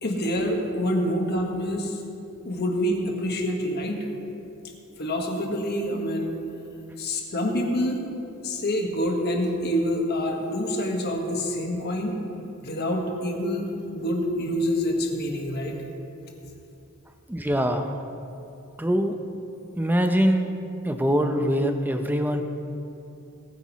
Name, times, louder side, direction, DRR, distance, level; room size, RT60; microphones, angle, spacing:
voice 1, 0.0-2.0 2.4-4.1 5.0-6.4 7.0-8.0 8.4-12.2 12.6-15.8, equal, 50° left, 1 dB, 1.5 m, -26 dB
voice 2, 17.3-17.9 18.8-19.2 19.8-20.5 20.8-22.4, equal, 10° right, 6 dB, 0.6 m, -23 dB
19.5 x 9.6 x 3.1 m, 2.8 s
head